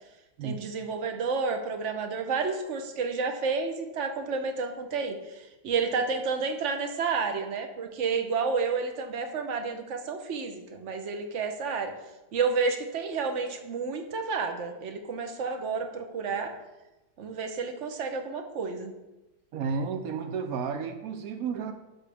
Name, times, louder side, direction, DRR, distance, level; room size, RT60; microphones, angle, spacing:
voice 1, 0.4-11.9 12.3-16.5 17.2-18.9, right 4 dB, 50° right, 5 dB, 0.9 m, -30 dB
voice 2, 19.5-21.7, right 5 dB, 85° right, 7 dB, 0.7 m, -32 dB
11.5 x 6.5 x 3.5 m, 1.0 s
omnidirectional pair, 2.2 m